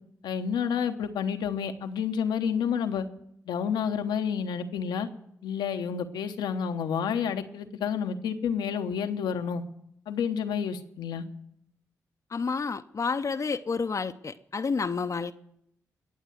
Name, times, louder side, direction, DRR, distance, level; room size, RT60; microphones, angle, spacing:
voice 1, 0.2-3.1 3.5-5.1 5.4-9.6 10.1-11.2, left 7 dB, 80° left, 7 dB, 1.0 m, -29 dB
voice 2, 12.3-15.3, left 5 dB, 45° left, 7 dB, 0.7 m, -30 dB
20.5 x 7.4 x 8.0 m, 0.75 s
supercardioid pair, 40°, 7 cm